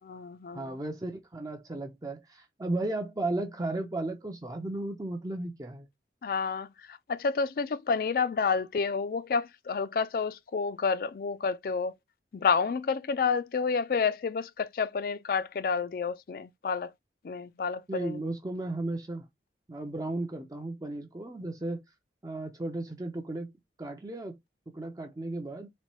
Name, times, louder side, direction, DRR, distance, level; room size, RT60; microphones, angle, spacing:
voice 1, 0.0-0.8 6.2-11.9 12.3-16.9 17.2-18.2, left 5 dB, 55° left, 0.3 m, -29 dB
voice 2, 0.5-5.9 17.9-19.2 19.7-21.8 22.2-23.5 23.8-24.4 24.7-25.7, right 2 dB, 20° right, 0.4 m, -35 dB
4.2 x 2.2 x 3.0 m
head